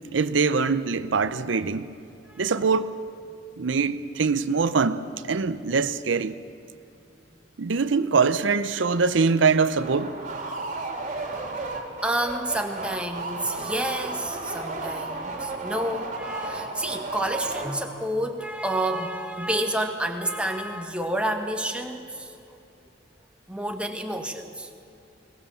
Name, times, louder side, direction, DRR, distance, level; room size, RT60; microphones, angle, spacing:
voice 1, 0.1-1.9 2.4-2.9 3.6-6.3 7.6-10.1, right 5 dB, 75° right, 0.6 m, -23 dB
sound 1, 9.8-18.1, right 3 dB, 40° right, 2.9 m, -34 dB
voice 2, 12.0-22.6 23.5-24.7, right 1 dB, 5° right, 1.5 m, -29 dB
22.0 x 19.0 x 7.1 m
head